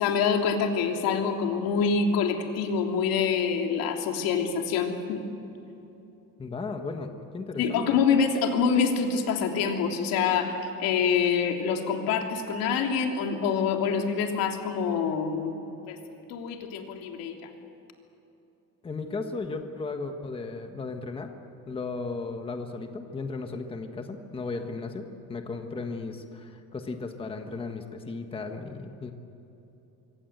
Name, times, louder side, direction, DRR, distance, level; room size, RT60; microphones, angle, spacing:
voice 1, 0.0-5.2 7.6-15.5 15.9-16.0 16.3-17.4, left 6 dB, 90° left, 3 dB, 3.2 m, -26 dB
voice 2, 6.4-7.8 18.8-21.3 21.7-29.1, left 3 dB, 15° left, 5 dB, 1.3 m, -35 dB
25.5 x 24.5 x 8.0 m, 2.9 s
cardioid pair, 180°, 34 cm